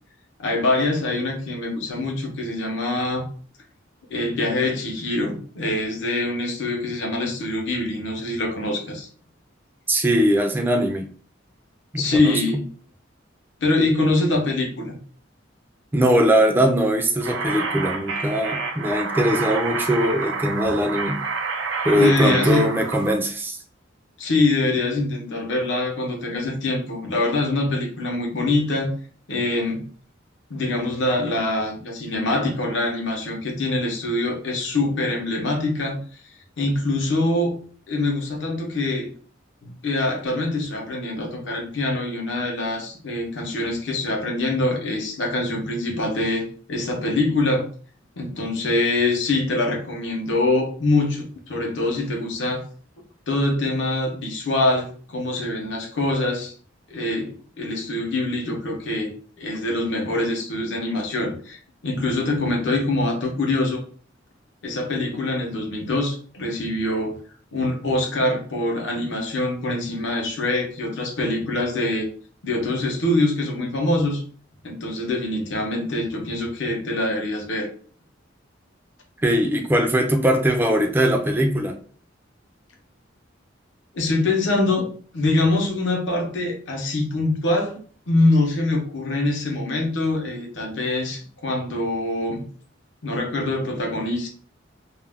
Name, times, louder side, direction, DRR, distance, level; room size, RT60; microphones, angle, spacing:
voice 1, 0.4-3.3 4.1-9.1 12.0-12.7 13.6-15.0 21.9-22.7 24.2-28.9 29.3-29.9 30.5-36.2 36.6-37.6 37.9-39.1 39.6-47.7 48.2-52.7 53.3-56.5 56.9-63.8 64.6-67.2 67.5-72.1 72.4-74.2 74.6-77.7 83.9-84.9 85.1-87.8 88.1-92.4 93.0-94.3, left 2 dB, 65° left, 1 dB, 0.6 m, -24 dB
voice 2, 9.9-11.1 11.9-12.4 15.9-21.2 21.8-23.6 79.2-81.8, equal, 10° right, 3 dB, 0.3 m, -21 dB
sound 1, 17.2-23.1, right 4 dB, 90° right, 0.4 m, -28 dB
2.3 x 2.1 x 3.3 m, 0.43 s
head